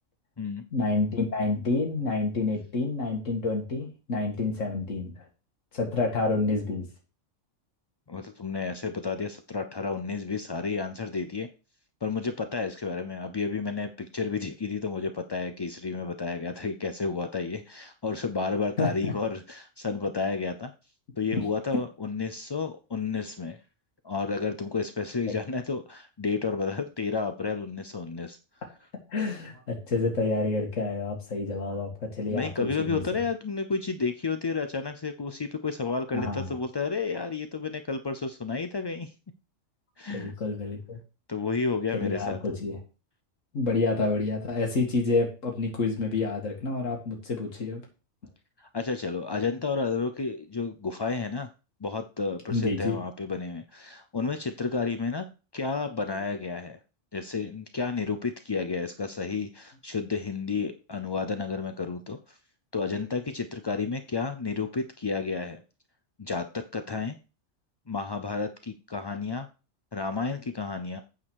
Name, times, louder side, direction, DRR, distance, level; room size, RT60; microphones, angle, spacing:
voice 1, 0.7-5.1 5.7-6.9 18.8-19.1 21.3-21.4 29.1-33.0 36.1-36.5 40.1-41.0 41.9-42.8 43.5-47.8 52.5-53.0, left 3 dB, 80° left, 2 dB, 2.2 m, -28 dB
voice 2, 8.1-11.5 12.0-20.7 21.2-23.6 24.0-28.4 32.3-39.1 40.0-40.3 41.3-42.4 48.6-51.5 51.8-55.3 55.5-56.8 57.1-62.4 62.7-65.6 66.2-67.2 67.9-69.5 69.9-71.0, left 4 dB, 40° left, 8 dB, 0.4 m, -31 dB
8.9 x 4.9 x 6.3 m, 0.32 s
omnidirectional pair, 1.3 m